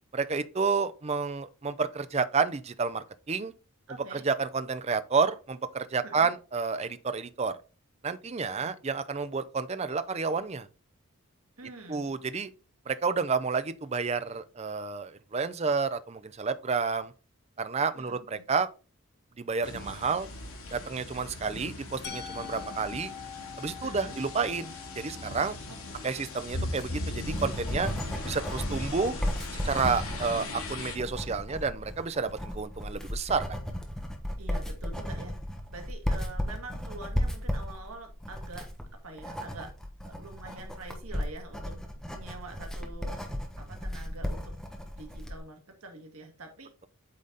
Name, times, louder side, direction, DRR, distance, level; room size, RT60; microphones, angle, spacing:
voice 1, 0.1-3.5 4.1-7.5 8.0-10.7 11.9-12.5 12.9-17.1 17.6-18.7 19.4-20.3 20.7-23.1 23.6-25.6 26.0-27.9 28.2-29.1 29.5-33.4, right 5 dB, 30° right, 0.5 m, -30 dB
voice 2, 3.9-4.3 6.0-6.3 8.5-8.7 11.6-12.0 18.0-18.5 23.8-24.2 25.7-26.1 30.1-30.5 34.4-35.3 35.7-38.7 39.0-39.7 40.1-43.2 43.6-44.6 45.0-46.7, right 2 dB, 85° right, 1.9 m, -46 dB
sound 1, 19.6-31.0, left 2 dB, 75° left, 2.6 m, -39 dB
Musical instrument, 22.0-27.9, left 8 dB, 50° left, 1.2 m, -46 dB
Writing, 26.8-45.4, equal, ahead, 1.2 m, -35 dB
8.5 x 4.0 x 4.0 m
head